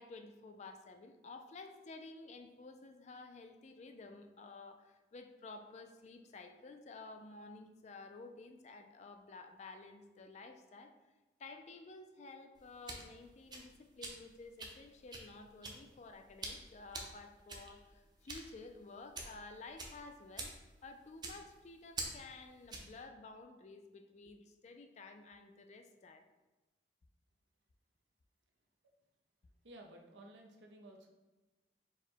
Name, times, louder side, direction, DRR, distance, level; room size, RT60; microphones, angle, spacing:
voice 1, 0.0-10.9 11.4-20.5 20.8-26.2, left 3 dB, 40° left, 6 dB, 0.3 m, -52 dB
sound 1, 12.6-23.0, right 2 dB, 25° right, 0.5 m, -48 dB
voice 2, 29.6-31.1, right 1 dB, 80° right, 1 dB, 0.7 m, -55 dB
4.7 x 2.2 x 4.4 m, 1.2 s
head